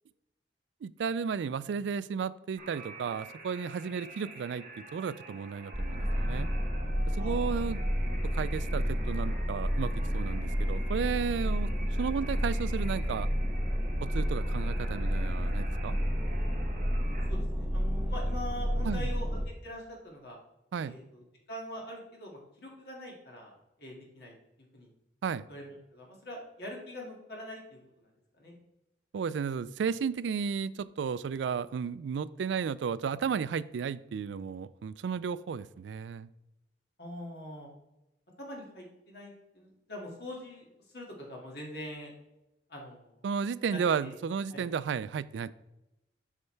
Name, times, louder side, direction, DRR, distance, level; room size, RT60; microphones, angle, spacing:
voice 1, 0.8-6.5 7.1-7.8 8.2-11.7 12.0-13.3 14.0-16.0 18.8-19.1 20.7-21.0 25.2-25.5 29.1-36.3 43.2-45.5, right 6 dB, 85° right, 17 dB, 0.3 m, -33 dB
sound 1, 2.6-17.3, right 2 dB, 50° right, 1.5 m, -48 dB
sound 2, 5.7-19.4, equal, 15° right, 1.0 m, -30 dB
voice 2, 7.2-7.6 16.9-20.4 20.8-23.5 23.8-24.3 24.7-24.9 25.5-28.1 28.4-28.5 37.0-37.7 38.4-42.1 42.7-43.3 43.7-44.2 44.5-44.7, left 1 dB, 60° left, -1 dB, 2.1 m, -44 dB
8.3 x 5.5 x 3.3 m, 0.94 s
head